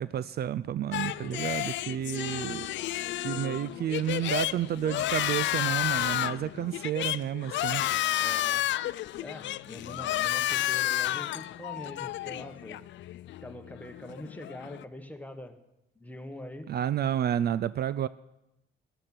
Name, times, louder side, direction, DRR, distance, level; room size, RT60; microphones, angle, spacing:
voice 1, 0.0-2.7 3.2-7.8 16.7-18.1, right 10 dB, 55° right, 17 dB, 0.4 m, -30 dB
sound 1, 0.9-14.8, left 14 dB, 70° left, 0.4 m, -31 dB
voice 2, 8.2-8.7 9.2-12.8 13.4-15.6 15.9-16.7, left 1 dB, 10° left, 6 dB, 1.3 m, -43 dB
13.0 x 11.0 x 6.0 m, 0.89 s
cardioid pair, 90°, 20 cm